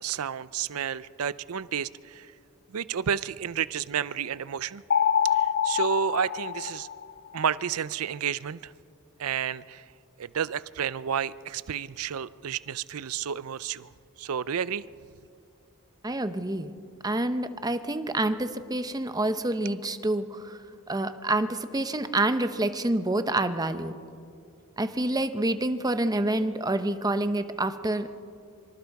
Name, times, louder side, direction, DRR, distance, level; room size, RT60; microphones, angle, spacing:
voice 1, 0.0-2.3 2.7-4.8 5.3-6.9 7.3-8.7 9.2-9.8 10.2-13.9 14.2-14.9, right 8 dB, 75° right, 17 dB, 0.5 m, -31 dB
sound 1, 4.9-7.4, left 8 dB, 45° left, 0.5 m, -26 dB
voice 2, 16.0-16.7 17.0-20.6 20.9-23.9 24.8-28.1, right 2 dB, 15° right, 10 dB, 0.9 m, -27 dB
25.5 x 25.0 x 4.8 m, 2.4 s
head